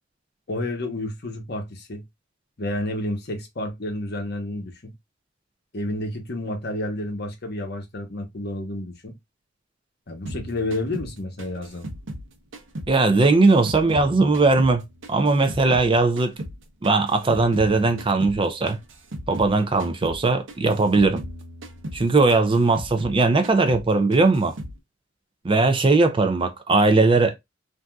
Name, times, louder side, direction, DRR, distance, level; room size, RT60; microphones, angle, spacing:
voice 1, 0.5-2.0 2.6-4.9 5.7-9.1 10.1-11.9, left 1 dB, 55° left, 0.9 m, -30 dB
sound 1, 10.3-13.0 13.2-15.9 16.2-19.5 19.8-20.2 20.5-23.2 23.4-23.9 24.1-24.8, right 1 dB, 70° right, 0.8 m, -37 dB
voice 2, 12.9-14.8 15.1-16.3 16.8-18.8 19.3-21.2 21.9-24.6 25.4-27.4, right 3 dB, 25° right, 0.4 m, -19 dB
3.5 x 2.6 x 2.2 m
head